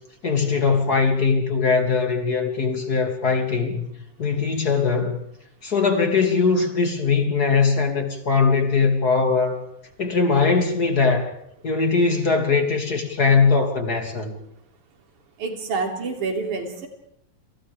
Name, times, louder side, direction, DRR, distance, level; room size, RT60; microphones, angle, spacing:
voice 1, 0.2-3.9 4.2-5.2 5.6-9.6 10.0-11.3 11.6-14.3, left 4 dB, 30° left, 2.9 m, -21 dB
voice 2, 15.4-16.9, right 4 dB, 70° right, 4.6 m, -27 dB
30.0 x 27.5 x 3.6 m
omnidirectional pair, 3.7 m